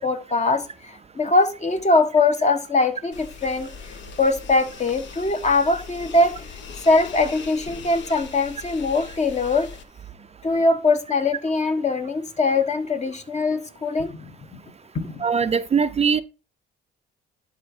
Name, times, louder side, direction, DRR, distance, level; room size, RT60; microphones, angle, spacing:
voice 1, 0.0-3.7 4.2-6.5 6.8-9.7 10.4-14.3 14.9-15.2, left 3 dB, 35° left, 1.3 m, -22 dB
sound 1, 3.1-9.8, left 5 dB, 70° left, 1.2 m, -40 dB
voice 2, 15.2-16.2, right 6 dB, 35° right, 0.5 m, -21 dB
11.0 x 4.0 x 4.5 m
cardioid pair, 90°, 20 cm